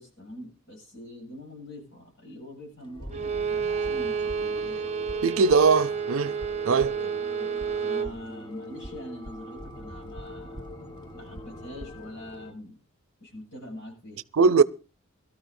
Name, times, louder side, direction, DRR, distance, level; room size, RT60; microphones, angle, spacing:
voice 1, 0.0-4.9 7.0-7.5 7.8-10.7 11.1-12.8 13.2-14.2, left 1 dB, 60° left, 7.5 m, -44 dB
sound 1, 2.8-12.5, left 1 dB, 20° left, 1.3 m, -42 dB
Bowed string instrument, 3.1-8.2, right 6 dB, 30° right, 0.6 m, -30 dB
voice 2, 5.2-6.4 6.6-6.9 14.3-14.6, right 5 dB, 75° right, 0.6 m, -20 dB
22.5 x 13.0 x 2.7 m
head